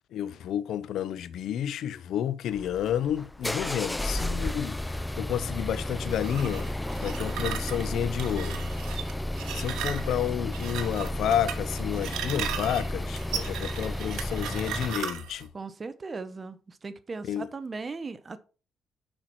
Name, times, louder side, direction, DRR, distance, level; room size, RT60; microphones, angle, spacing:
voice 1, 0.1-6.7 7.0-8.7 9.5-15.5 17.3-17.5, left 10 dB, 75° left, 0.6 m, -30 dB
sound 1, 2.5-15.0, left 1 dB, 10° left, 0.3 m, -33 dB
sound 2, 6.1-15.4, right 8 dB, 85° right, 1.1 m, -37 dB
voice 2, 15.5-18.4, right 4 dB, 35° right, 0.8 m, -38 dB
6.5 x 5.8 x 4.5 m
cardioid pair, 90°, 0 cm